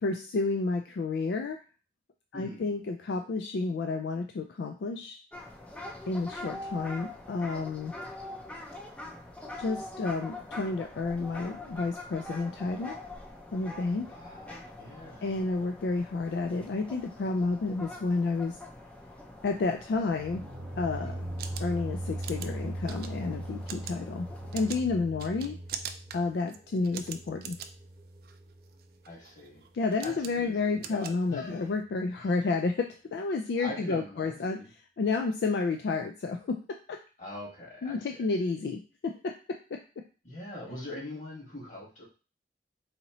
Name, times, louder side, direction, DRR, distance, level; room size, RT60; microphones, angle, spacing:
voice 1, 0.0-1.6 2.3-5.2 6.1-7.9 9.6-13.0 13.5-14.1 15.2-18.6 19.4-20.4 20.8-21.1 21.6-24.3 24.5-25.6 26.1-27.6 29.7-34.6 35.0-37.0 37.8-40.0, left 3 dB, 70° left, 4 dB, 0.3 m, -31 dB
voice 2, 2.3-2.7 13.8-15.2 21.0-21.5 25.2-25.6 26.7-26.9 29.0-29.7 30.0-31.7 32.2-32.3 33.6-34.7 37.2-38.2 40.2-42.0, left 1 dB, 45° left, -4 dB, 1.5 m, -43 dB
sound 1, 5.3-24.8, left 1 dB, 5° left, 0.5 m, -44 dB
sound 2, 20.1-28.9, right 1 dB, 30° right, 0.8 m, -39 dB
sound 3, 21.2-31.8, right 8 dB, 55° right, 0.3 m, -44 dB
4.1 x 2.7 x 2.9 m, 0.34 s
head